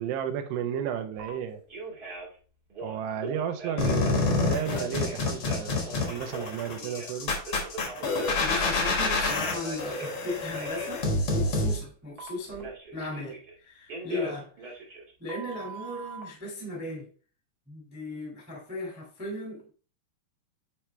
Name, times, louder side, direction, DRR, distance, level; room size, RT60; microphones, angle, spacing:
voice 1, 0.0-1.6 2.8-7.3, right 9 dB, 85° right, 2.9 m, -33 dB
Telephone, 1.2-1.3 1.7-2.3 2.7-4.1 4.7-7.1 7.4-10.2 10.5-10.9 12.2-13.5 13.9-16.2, right 3 dB, 55° right, 1.0 m, -40 dB
sound 1, 3.8-11.8, left 3 dB, 55° left, 1.4 m, -28 dB
voice 2, 8.4-11.1 11.3-14.7 15.2-17.1 17.7-19.7, left 2 dB, 5° right, 0.8 m, -37 dB
8.6 x 4.5 x 3.3 m
omnidirectional pair, 4.8 m